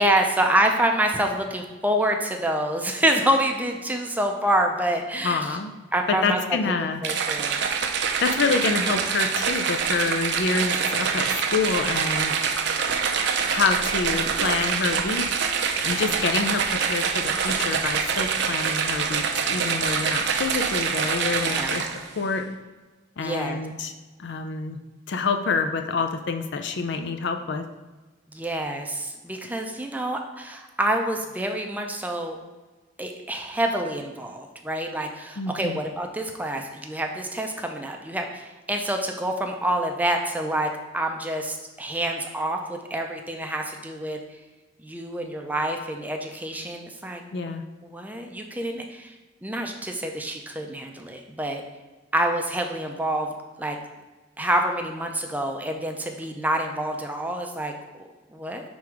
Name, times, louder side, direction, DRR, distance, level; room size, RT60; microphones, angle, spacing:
voice 1, 0.0-5.6 5.9-6.4 7.0-7.7 21.6-21.8 23.2-23.6 28.3-32.4 33.0-44.2 44.8-47.5 47.8-49.1 49.4-51.6 52.1-53.8 54.4-57.7 58.0-58.6, right 1 dB, 10° right, 3 dB, 0.5 m, -27 dB
voice 2, 5.2-5.7 6.1-7.0 8.2-12.3 13.5-15.3 15.8-21.9 22.2-22.5 23.2-23.9 24.2-24.8 25.1-27.7 35.4-35.8 47.3-47.6, left 4 dB, 65° left, 6 dB, 0.5 m, -27 dB
sound 1, 7.0-22.1, right 6 dB, 65° right, 0.5 m, -25 dB
6.1 x 3.5 x 4.8 m, 1.2 s
head